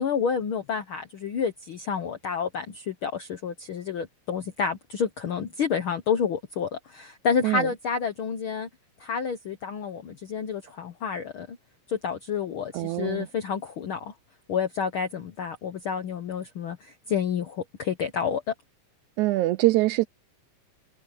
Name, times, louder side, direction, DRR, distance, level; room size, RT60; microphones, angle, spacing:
voice 1, 0.0-8.7 9.0-11.6 11.9-14.1 14.5-18.5, left 6 dB, 90° left, 1.1 m, -29 dB
voice 2, 12.7-13.3 19.2-20.1, right 18 dB, 85° right, 1.7 m, -23 dB
omnidirectional pair, 3.9 m